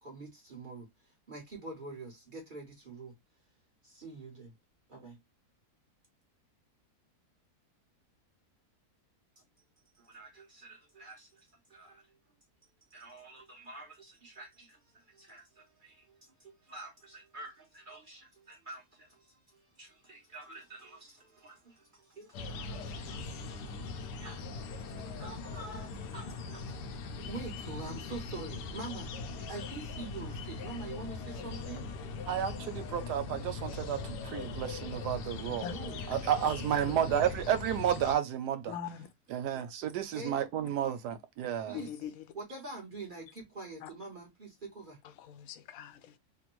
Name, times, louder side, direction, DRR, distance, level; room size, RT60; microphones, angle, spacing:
voice 1, 0.0-0.9 1.3-3.1 3.8-4.5 4.9-5.2 10.0-11.4 11.7-12.0 12.9-14.8 15.1-16.0 16.4-19.1 19.8-24.4 24.8-26.8 27.2-31.9 35.6-36.0 36.4-36.5 36.8-37.0 40.1-40.4 41.7-41.9 42.3-45.0, right 3 dB, 35° right, 1.0 m, -46 dB
sound 1, 22.3-38.2, left 4 dB, 90° left, 1.2 m, -40 dB
voice 2, 32.3-35.6 36.1-38.7 39.3-41.8, right 9 dB, 85° right, 1.2 m, -32 dB
voice 3, 38.7-39.1 41.7-42.3 43.8-43.9 45.0-46.2, left 8 dB, 70° left, 0.9 m, -42 dB
3.4 x 2.2 x 2.9 m
omnidirectional pair, 1.7 m